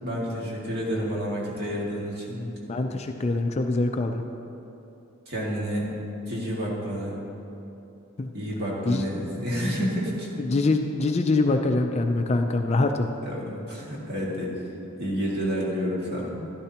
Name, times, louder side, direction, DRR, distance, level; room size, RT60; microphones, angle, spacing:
voice 1, 0.0-2.5 5.3-5.9 6.3-7.1 8.3-10.3 13.2-14.5 15.0-16.3, equal, 45° right, -4 dB, 2.0 m, -29 dB
voice 2, 2.4-4.2 8.2-8.3 8.9-9.0 10.4-13.1 16.4-16.5, left 2 dB, 30° left, 5 dB, 0.4 m, -24 dB
12.0 x 12.0 x 2.9 m, 3.0 s
head